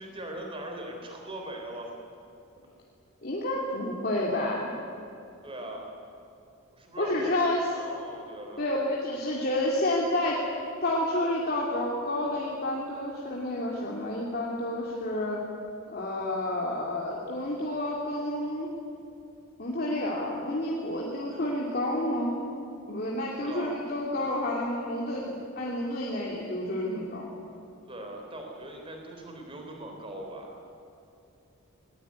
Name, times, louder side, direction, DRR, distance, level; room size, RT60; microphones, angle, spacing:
voice 1, 0.0-2.0 5.4-5.9 6.7-8.7 23.4-23.8 27.9-30.5, right 1 dB, 25° right, 2 dB, 3.6 m, -40 dB
voice 2, 3.2-4.7 7.0-7.7 8.6-10.5 10.8-15.4 15.9-18.7 19.6-22.4 22.9-27.3, left 1 dB, 45° left, -3 dB, 2.9 m, -30 dB
20.5 x 20.0 x 9.7 m, 2.7 s
head